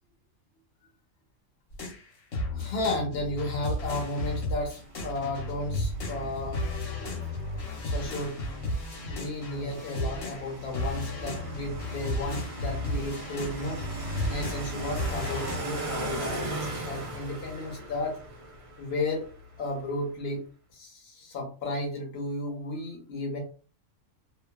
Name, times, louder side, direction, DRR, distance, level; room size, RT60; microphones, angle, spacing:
sound 1, 1.7-10.5 10.7-15.6, left 1 dB, 80° left, 1.5 m, -34 dB
voice 1, 2.5-6.6 7.8-8.4 9.1-13.8 14.3-18.2 18.8-19.3 19.6-20.4 20.7-23.4, left 2 dB, 55° left, -1 dB, 1.1 m, -33 dB
sound 2, 3.7-19.9, right 1 dB, 45° right, 0.4 m, -40 dB
2.9 x 2.3 x 2.2 m, 0.37 s
omnidirectional pair, 1.4 m